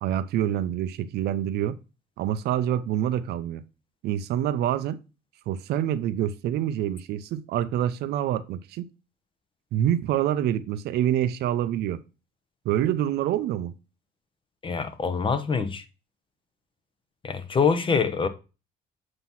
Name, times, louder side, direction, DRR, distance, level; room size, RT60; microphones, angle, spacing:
voice 1, 0.0-1.8 2.2-3.6 4.0-5.0 5.5-8.9 9.7-12.0 12.6-13.7, right 11 dB, 75° right, 0.6 m, -26 dB
voice 2, 14.6-15.8 17.2-18.3, left 5 dB, 30° left, 0.8 m, -25 dB
7.6 x 3.0 x 5.5 m
cardioid pair, 110°, 17 cm